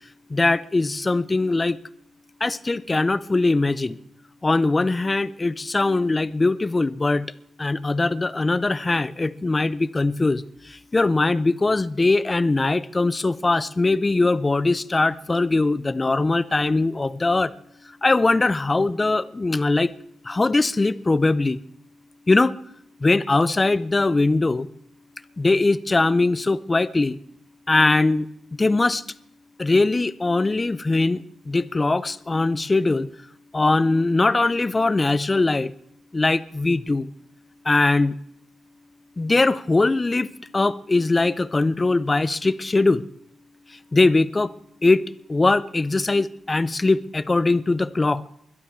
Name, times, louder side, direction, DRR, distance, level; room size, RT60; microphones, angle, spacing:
voice 1, 0.3-1.8 2.4-4.0 4.4-7.3 7.6-17.5 18.0-19.9 20.2-21.6 22.3-22.5 23.0-24.7 25.4-27.2 27.7-28.3 28.6-29.0 29.6-33.1 33.5-35.7 36.1-37.1 37.7-38.2 39.2-40.3 40.5-43.0 43.9-44.5 44.8-48.2, left 3 dB, 20° left, 0.5 m, -21 dB
21.5 x 12.0 x 4.5 m
wide cardioid pair, 150°, 0 cm